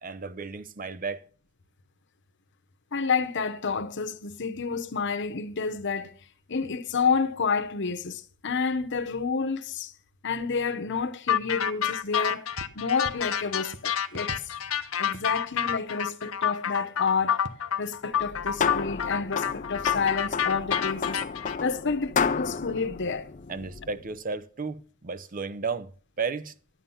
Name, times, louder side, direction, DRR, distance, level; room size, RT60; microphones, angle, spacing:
voice 1, 0.0-1.2 23.5-26.5, right 4 dB, 40° right, 0.7 m, -33 dB
voice 2, 2.9-6.2 6.5-9.9 10.2-12.5 12.7-14.4 15.0-17.4 17.8-21.2 21.6-23.3, left 5 dB, 60° left, 1.0 m, -29 dB
sound 1, 11.3-21.6, left 9 dB, 80° left, 0.8 m, -28 dB
sound 2, 12.5-16.5 17.4-18.6 19.3-20.3, right 2 dB, 65° right, 1.1 m, -47 dB
sound 3, 18.1-24.0, left 6 dB, 40° left, 0.5 m, -31 dB
13.0 x 9.4 x 5.6 m
head